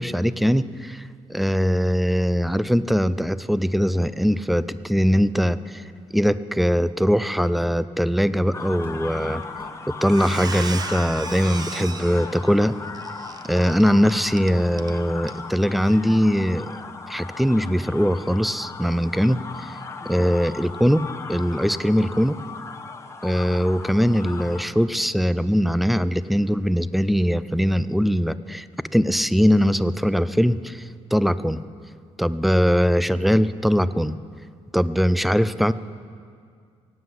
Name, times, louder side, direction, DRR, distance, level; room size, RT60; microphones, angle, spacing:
voice 1, 0.0-5.8 6.1-9.4 9.9-12.7 13.4-16.8 17.1-19.8 20.1-22.4 23.2-28.7 28.9-31.6 32.2-34.2 34.7-35.7, equal, ahead, 16 dB, 0.4 m, -21 dB
sound 1, 8.5-24.7, left 4 dB, 25° left, 0.9 m, -37 dB
sound 2, 8.8-9.1 9.6-9.8 10.8-11.1 12.1-12.4 13.8-14.0, right 1 dB, 15° right, 1.9 m, -52 dB
Squeak, 9.4-9.7 10.0-14.9 15.2-15.4 15.8-16.0, right 5 dB, 35° right, 0.7 m, -36 dB
17.0 x 9.6 x 7.8 m, 2.2 s
cardioid pair, 130°, 11 cm